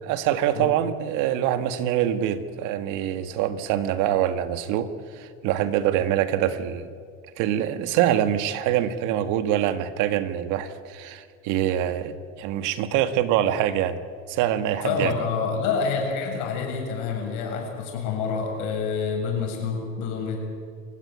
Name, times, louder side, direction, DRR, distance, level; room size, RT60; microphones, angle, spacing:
voice 1, 0.0-6.9 7.4-14.0 14.3-15.1, right 11 dB, 75° right, 10 dB, 1.9 m, -25 dB
voice 2, 14.8-20.4, left 5 dB, 75° left, 2 dB, 7.4 m, -27 dB
28.5 x 15.5 x 9.7 m, 2.1 s
cardioid pair, 120°, 31 cm